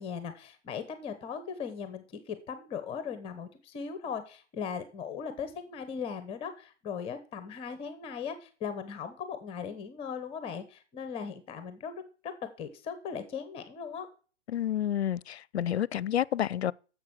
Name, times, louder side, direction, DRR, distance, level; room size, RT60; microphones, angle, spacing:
voice 1, 0.0-11.9 12.2-14.1, left 6 dB, 15° left, 0.9 m, -38 dB
voice 2, 14.5-16.7, left 10 dB, 65° left, 0.5 m, -29 dB
10.5 x 7.3 x 6.3 m
figure-of-eight pair, 130°, 36 cm